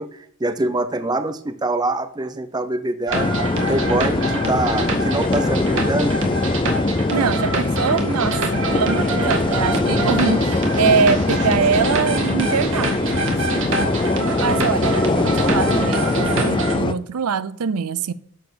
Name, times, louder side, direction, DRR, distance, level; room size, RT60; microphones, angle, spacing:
voice 1, 0.0-3.3 3.7-6.2, right 2 dB, 20° right, 0.6 m, -24 dB
sound 1, 3.1-16.9, left 2 dB, 20° left, 0.4 m, -22 dB
sound 2, 3.1-16.8, right 2 dB, 60° right, 1.9 m, -26 dB
voice 2, 7.1-14.0 14.4-18.1, right 6 dB, 80° right, 0.5 m, -23 dB
12.0 x 4.2 x 6.8 m
head